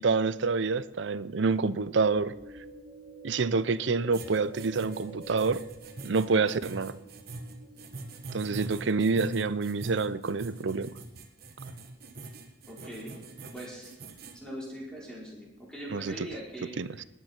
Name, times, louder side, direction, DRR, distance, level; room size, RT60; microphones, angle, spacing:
voice 1, 0.0-2.3 3.2-5.7 6.0-7.0 8.3-10.9 15.9-16.1 16.8-17.0, right 4 dB, 70° right, 16 dB, 0.6 m, -27 dB
sound 1, 1.8-9.2, right 2 dB, 40° right, 3.3 m, -50 dB
sound 2, 4.1-14.4, right 2 dB, 55° right, 1.6 m, -43 dB
voice 2, 12.7-13.1 13.5-13.9 14.3-16.8, equal, 5° left, -5 dB, 4.7 m, -41 dB
19.5 x 9.4 x 4.4 m, 1.0 s
head